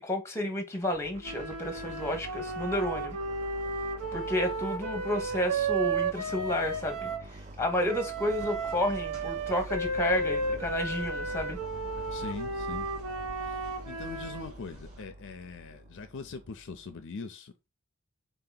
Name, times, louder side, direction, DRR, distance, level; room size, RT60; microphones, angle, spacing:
voice 1, 0.0-3.2 4.1-11.6, left 1 dB, 10° left, 0.9 m, -31 dB
sound 1, 0.8-17.0, right 1 dB, 30° right, 0.4 m, -46 dB
sound 2, 1.2-7.3 7.9-14.5, right 3 dB, 90° right, 1.0 m, -33 dB
sound 3, 8.3-15.0, equal, 65° right, 2.7 m, -51 dB
voice 2, 12.1-12.9 13.4-17.7, left 4 dB, 55° left, 0.5 m, -42 dB
4.0 x 2.9 x 3.9 m
head